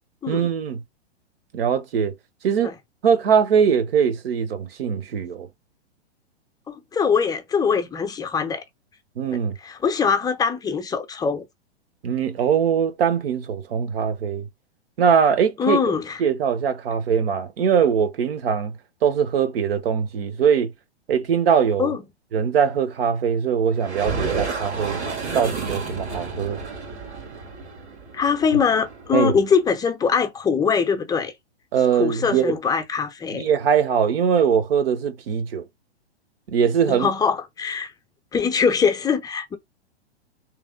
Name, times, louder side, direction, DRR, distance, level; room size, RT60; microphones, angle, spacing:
voice 1, 0.3-0.8 1.5-2.1 2.4-2.7 3.0-5.5 9.2-9.5 12.0-14.5 15.0-15.8 16.2-18.7 19.0-20.7 21.1-21.9 22.3-25.0 25.3-26.6 29.1-29.4 31.7-32.5 33.3-35.6 36.5-37.1, right 7 dB, 60° right, 1.0 m, -21 dB
voice 2, 6.7-8.6 9.3-11.5 15.6-16.2 21.8-22.0 28.1-31.3 31.9-33.5 36.9-37.9 38.3-39.6, left 6 dB, 10° left, 0.6 m, -22 dB
sound 1, 23.8-29.4, right 4 dB, 85° right, 1.8 m, -31 dB
3.4 x 3.2 x 3.5 m
hypercardioid pair, 115°, 33 cm